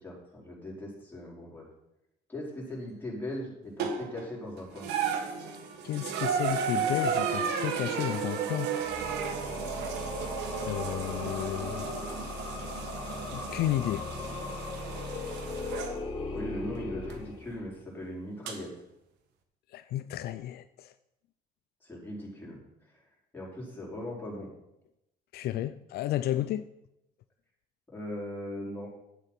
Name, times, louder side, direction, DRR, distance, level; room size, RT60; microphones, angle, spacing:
voice 1, 0.0-1.6 2.3-4.9 16.3-18.7 21.8-23.0 23.3-24.5 27.9-28.9, left 1 dB, 10° left, -4 dB, 4.9 m, -39 dB
sound 1, 3.8-4.3 4.8-16.0 17.1-17.2 18.5-18.6, right 6 dB, 85° right, 1.6 m, -33 dB
voice 2, 5.8-8.8 10.7-12.1 13.3-14.1 19.7-20.9 25.3-26.6, left 13 dB, 70° left, 11 dB, 0.5 m, -32 dB
sound 2, 8.8-17.9, left 3 dB, 30° left, 3.9 m, -38 dB
11.5 x 8.2 x 5.9 m, 0.87 s
cardioid pair, 110°, 17 cm